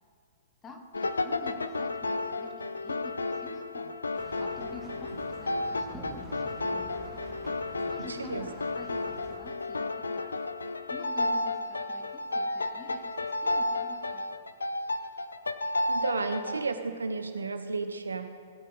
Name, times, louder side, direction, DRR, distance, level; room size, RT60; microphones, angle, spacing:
voice 1, 0.6-3.9 4.2-7.1 7.9-10.5 10.9-14.5, left 3 dB, 15° left, 4 dB, 1.3 m, -48 dB
sound 1, 0.9-16.6, left 2 dB, 75° left, 0.6 m, -32 dB
sound 2, 4.1-9.4, right 1 dB, 15° right, 1.9 m, -47 dB
voice 2, 15.9-18.3, right 4 dB, 75° right, 8 dB, 0.9 m, -32 dB
17.0 x 8.5 x 3.9 m, 2.2 s
figure-of-eight pair, 110°, 0 cm